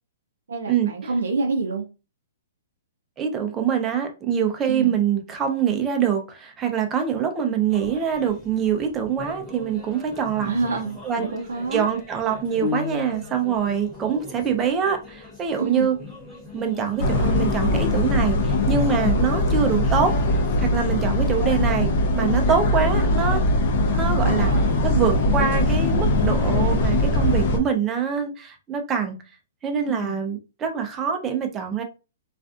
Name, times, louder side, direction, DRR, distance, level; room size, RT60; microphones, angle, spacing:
voice 1, 0.5-1.8 4.7-4.9 10.5-11.8 15.6-15.9 24.2-24.8 29.9-30.2, right 3 dB, 85° right, 0.5 m, -27 dB
voice 2, 3.2-10.5 11.0-11.3 11.7-16.0 16.5-23.4 23.9-24.5 24.8-29.2 29.6-31.8, right 7 dB, 20° right, 0.6 m, -24 dB
sound 1, 7.7-20.7, left 2 dB, 10° left, 1.0 m, -43 dB
sound 2, 12.6-13.6, left 6 dB, 75° left, 0.3 m, -30 dB
sound 3, 17.0-27.6, left 1 dB, 45° left, 0.7 m, -21 dB
2.4 x 2.3 x 2.4 m
hypercardioid pair, 140°, 0 cm